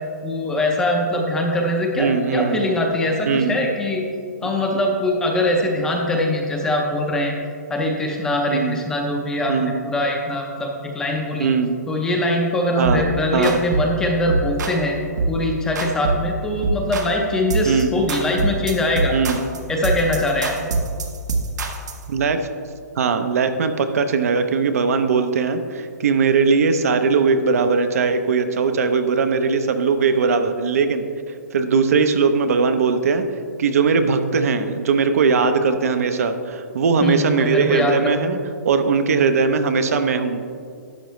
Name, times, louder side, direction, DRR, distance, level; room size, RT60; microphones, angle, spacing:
voice 1, 0.2-4.1 4.4-7.3 7.7-10.7 10.9-11.5 11.9-15.0 15.3-19.2 19.7-20.6 37.0-38.3, left 1 dB, 5° left, 1 dB, 0.6 m, -22 dB
voice 2, 2.0-2.6 3.3-3.5 8.5-8.8 9.5-9.7 11.4-11.7 12.8-13.0 13.3-13.6 17.6-17.9 19.1-19.5 22.1-22.4 23.0-31.1 31.5-33.2 33.6-38.4 38.6-40.4, right 5 dB, 55° right, 8 dB, 0.7 m, -19 dB
sound 1, 12.8-13.1 13.4-13.9 14.3-14.8 15.2-15.4 15.8-16.3 16.6-17.2 17.5-17.8 18.1-22.0, right 3 dB, 80° right, 1.2 m, -24 dB
11.5 x 7.7 x 3.1 m, 2.3 s
hypercardioid pair, 170°, 9 cm